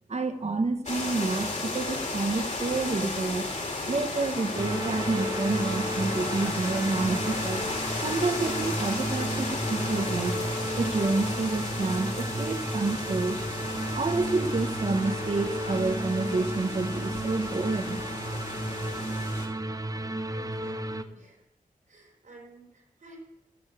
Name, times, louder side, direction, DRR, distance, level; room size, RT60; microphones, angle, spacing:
voice 1, 0.1-3.5 3.9-7.6 8.0-10.4 10.7-13.6 13.9-18.0, right 3 dB, 50° right, 8 dB, 1.3 m, -29 dB
sound 1, 0.9-19.5, left 2 dB, 55° left, 3.0 m, -34 dB
sound 2, 4.5-21.0, right 1 dB, 25° right, 0.9 m, -33 dB
voice 2, 20.4-21.5 21.9-23.2, right 2 dB, 65° right, 0 dB, 4.3 m, -52 dB
13.5 x 7.4 x 7.3 m, 0.91 s
wide cardioid pair, 75°, 15 cm